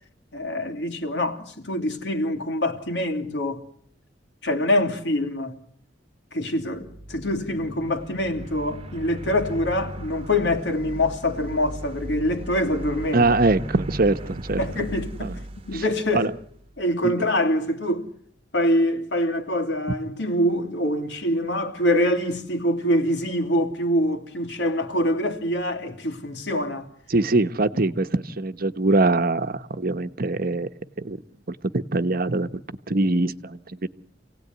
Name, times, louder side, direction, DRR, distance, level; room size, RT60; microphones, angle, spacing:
voice 1, 0.3-3.7 4.4-5.6 6.3-13.3 14.6-15.4 15.7-16.3 16.8-18.1 18.5-26.9, left 1 dB, 70° left, 3.1 m, -25 dB
sound 1, 6.6-16.9, right 1 dB, 30° right, 1.2 m, -37 dB
voice 2, 13.1-14.6 15.2-15.3 15.7-15.8 16.1-16.3 17.0-17.3 27.1-30.7 31.0-31.2 31.5-32.6 32.9-33.9, right 2 dB, 55° right, 1.1 m, -23 dB
27.5 x 17.5 x 9.6 m
head